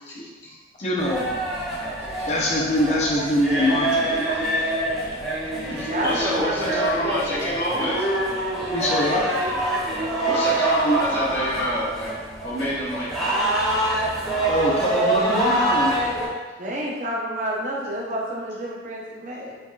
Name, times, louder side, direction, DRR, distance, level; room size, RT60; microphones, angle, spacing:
voice 1, 0.1-0.6 2.0-2.3 4.1-4.5 5.7-8.1 10.2-12.1 12.4-13.7 16.1-16.3, equal, 70° left, -8 dB, 1.1 m, -28 dB
voice 2, 0.8-1.3 2.3-4.2 8.7-9.2 14.5-16.1, left 1 dB, 35° left, -3 dB, 0.6 m, -23 dB
sound 1, 1.0-16.3, right 1 dB, ahead, 0.9 m, -25 dB
voice 3, 5.9-7.5 16.6-19.6, equal, 40° right, -3 dB, 0.5 m, -29 dB
4.5 x 2.4 x 2.4 m, 1.3 s
head